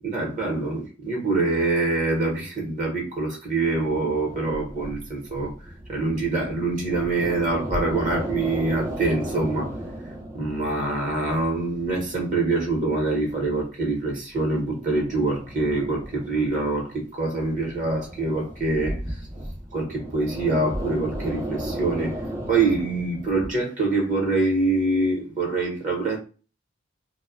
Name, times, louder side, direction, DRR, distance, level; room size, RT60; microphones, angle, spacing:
voice 1, 0.0-5.5 5.9-9.7 10.3-19.3 19.7-22.2 22.5-26.2, right 3 dB, 40° right, 0.9 m, -25 dB
sound 1, 3.6-10.9 11.2-13.6 14.1-16.9 17.4-23.5, right 1 dB, 15° right, 0.6 m, -35 dB
2.6 x 2.2 x 2.4 m
head